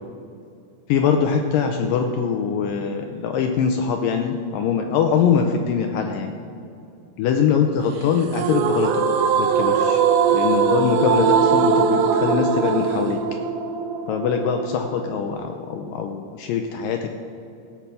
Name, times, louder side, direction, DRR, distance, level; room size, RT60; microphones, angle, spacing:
voice 1, 0.9-6.3 7.2-10.0 10.3-13.2 14.1-17.1, left 6 dB, 80° left, 5 dB, 2.1 m, -22 dB
sound 1, 8.3-15.4, right 6 dB, 90° right, 1.7 m, -21 dB
16.0 x 5.9 x 6.8 m, 2.5 s
omnidirectional pair, 4.4 m